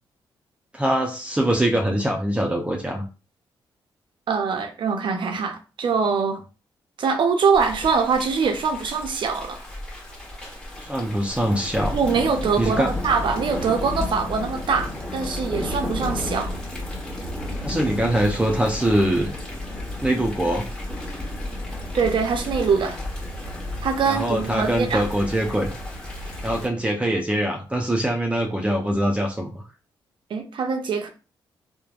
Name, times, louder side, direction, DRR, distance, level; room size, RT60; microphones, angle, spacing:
voice 1, 0.7-3.0 10.8-12.0 12.6-12.9 17.6-19.3 20.0-20.7 24.0-25.7 26.4-29.6, right 1 dB, 15° right, 0.6 m, -23 dB
voice 2, 4.3-6.4 7.0-9.6 11.9-16.6 21.9-23.0 23.8-25.0 30.3-31.1, right 5 dB, 60° right, 0.6 m, -23 dB
Thunder / Rain, 7.5-26.7, left 1 dB, 10° left, 1.1 m, -32 dB
3.1 x 2.1 x 2.4 m
supercardioid pair, 55°, 9 cm